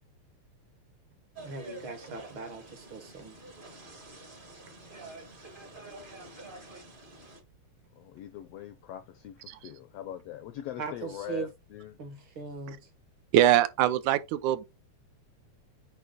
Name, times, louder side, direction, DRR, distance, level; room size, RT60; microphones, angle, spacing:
sound 1, 1.3-7.4, right 2 dB, 35° right, 0.8 m, -48 dB
voice 1, 1.4-3.4 10.8-11.5 12.0-12.9, right 4 dB, 55° right, 1.6 m, -39 dB
voice 2, 8.0-12.0, left 11 dB, 85° left, 1.4 m, -42 dB
voice 3, 13.3-14.6, right 12 dB, 80° right, 2.1 m, -23 dB
8.5 x 3.1 x 5.1 m
omnidirectional pair, 3.5 m